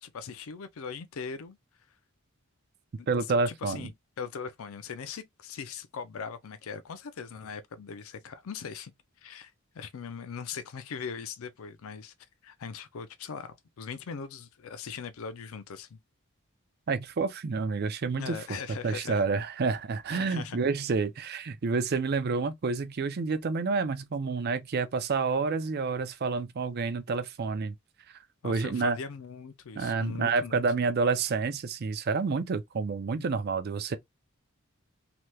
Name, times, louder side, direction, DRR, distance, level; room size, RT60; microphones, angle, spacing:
voice 1, 0.0-1.6 3.0-3.1 3.5-8.9 9.2-12.1 12.4-16.0 18.2-19.2 20.1-20.6 28.4-30.6, left 6 dB, 75° left, 0.4 m, -40 dB
voice 2, 3.1-3.9 16.9-18.4 18.8-27.7 28.4-29.0 29.8-34.0, right 4 dB, 45° right, 0.4 m, -29 dB
3.2 x 2.9 x 2.2 m
head